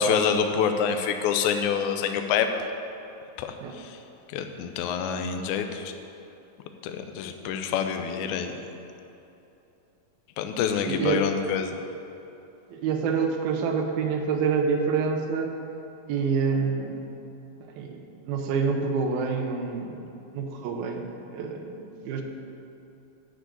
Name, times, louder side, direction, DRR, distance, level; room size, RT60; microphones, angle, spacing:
voice 1, 0.0-2.5 3.4-4.0 4.3-5.9 6.8-8.5 10.4-11.7, left 7 dB, 75° left, 6 dB, 1.9 m, -26 dB
voice 2, 10.9-11.2 12.7-15.5 16.1-17.0 17.8-20.0 20.3-22.2, right 5 dB, 90° right, 3 dB, 2.8 m, -27 dB
12.0 x 5.0 x 8.3 m, 2.9 s
omnidirectional pair, 4.1 m